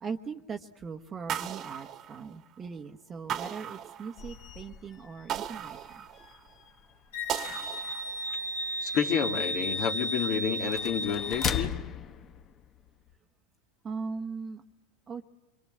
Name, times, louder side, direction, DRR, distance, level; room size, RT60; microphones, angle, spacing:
voice 1, 0.0-6.0 13.8-14.6 15.1-15.2, right 5 dB, 25° right, 5 dB, 1.0 m, -39 dB
sound 1, 1.3-2.6 3.3-4.5 5.3-6.5 7.3-8.5, right 10 dB, 40° right, 1.4 m, -37 dB
sound 2, 4.2-13.1, left 8 dB, 35° left, 1.3 m, -40 dB
Wind instrument woodwind instrument, 7.1-11.7, equal, 80° left, 2.9 m, -34 dB
voice 2, 8.8-11.7, left 8 dB, 50° left, 5 dB, 2.1 m, -29 dB
25.5 x 22.5 x 7.7 m, 1.1 s
hypercardioid pair, 110°, 0 cm